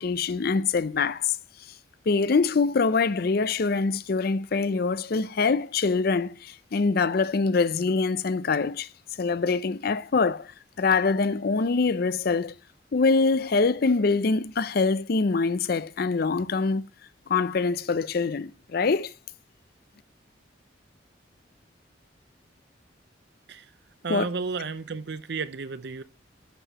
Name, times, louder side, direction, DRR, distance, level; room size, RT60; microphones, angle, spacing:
voice 1, 0.0-1.4 2.1-8.9 9.2-10.5 10.8-12.5 12.9-16.9 17.3-19.1 24.1-24.3, left 4 dB, 50° left, 0.5 m, -24 dB
voice 2, 24.0-26.0, right 4 dB, 60° right, 0.6 m, -32 dB
11.5 x 6.8 x 2.9 m
head